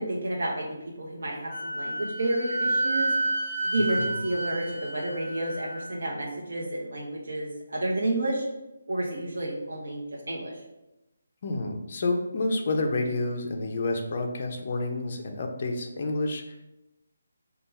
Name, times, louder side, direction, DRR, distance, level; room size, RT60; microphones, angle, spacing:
voice 1, 0.0-3.2 3.6-8.5 8.9-10.6, right 1 dB, 60° right, -2 dB, 0.8 m, -30 dB
Wind instrument woodwind instrument, 1.5-5.9, right 1 dB, 35° right, 1.3 m, -30 dB
voice 2, 11.4-16.7, left 2 dB, 35° left, 3 dB, 0.4 m, -29 dB
3.4 x 2.2 x 4.1 m, 0.95 s
hypercardioid pair, 175°, 0 cm